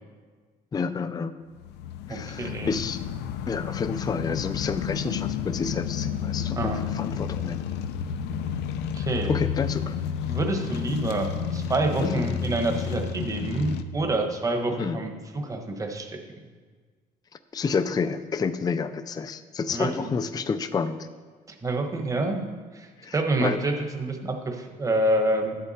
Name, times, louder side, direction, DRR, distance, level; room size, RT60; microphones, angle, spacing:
voice 1, 0.7-1.3 2.1-3.0 3.5-7.7 9.3-9.9 12.0-12.2 14.8-15.0 17.5-21.1 23.0-23.2 23.4-23.6, left 5 dB, 25° left, 11 dB, 0.4 m, -29 dB
sound 1, 1.6-13.8, left 8 dB, 85° left, 0.6 m, -31 dB
voice 2, 2.1-2.7 6.5-6.8 8.9-9.3 10.3-16.2 19.7-20.1 21.6-22.4 22.7-25.6, right 2 dB, 20° right, 3 dB, 1.3 m, -27 dB
11.5 x 8.1 x 4.3 m, 1.5 s
cardioid pair, 110°, 17 cm